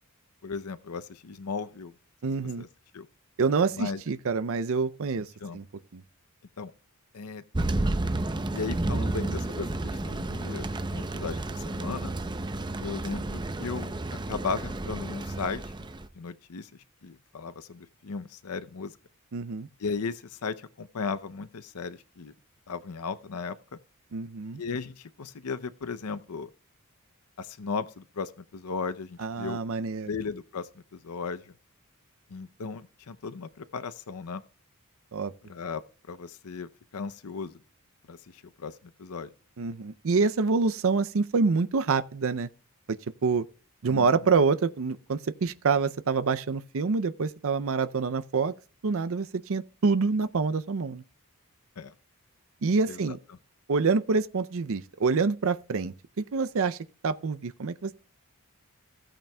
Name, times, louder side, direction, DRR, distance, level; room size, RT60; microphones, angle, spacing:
voice 1, 0.4-1.9 2.6-2.7 2.9-3.1 3.7-4.0 5.4-5.6 6.6-6.7 7.1-7.4 8.5-12.1 12.8-13.9 14.3-15.6 16.2-16.7 17.0-18.9 19.8-22.3 22.7-23.6 24.5-26.5 27.4-29.6 30.1-31.5 32.3-34.4 35.5-35.8 36.1-37.6 38.1-39.3 43.9-44.1 51.8-51.9 52.9-53.2, left 4 dB, 80° left, 0.6 m, -36 dB
voice 2, 2.2-2.6 3.4-5.3 5.5-5.6 5.9-6.0 19.3-19.7 24.1-24.6 29.2-30.1 35.1-35.3 39.6-42.5 43.2-43.4 43.8-48.5 48.8-51.0 52.6-53.2 53.7-56.8 57.0-57.9, right 4 dB, 60° right, 0.5 m, -26 dB
Thunder, 7.5-16.1, right 2 dB, 20° right, 0.6 m, -31 dB
16.0 x 8.9 x 2.2 m
head